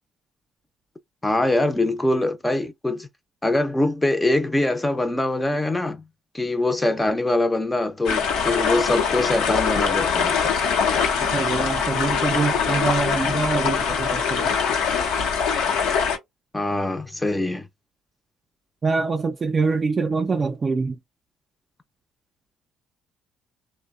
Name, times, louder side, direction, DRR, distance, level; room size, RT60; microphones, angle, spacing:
voice 1, 1.2-3.1 3.4-6.0 6.3-10.4 16.5-17.7, left 2 dB, 15° left, 0.5 m, -23 dB
sound 1, 8.0-16.2, left 6 dB, 85° left, 0.7 m, -23 dB
voice 2, 11.2-14.5 18.8-21.0, right 4 dB, 40° right, 0.4 m, -24 dB
2.7 x 2.1 x 2.3 m
supercardioid pair, 75°, 0 cm